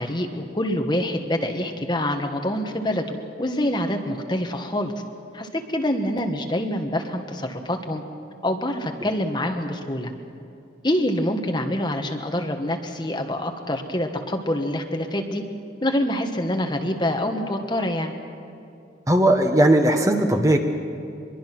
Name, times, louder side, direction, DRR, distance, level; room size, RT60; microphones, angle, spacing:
voice 1, 0.0-4.9 5.3-8.0 8.4-10.1 10.8-15.4 15.8-18.1, left 1 dB, 25° left, 4 dB, 1.4 m, -26 dB
voice 2, 19.1-20.6, right 1 dB, 20° right, 4 dB, 1.2 m, -18 dB
24.0 x 22.0 x 6.0 m, 2.5 s
head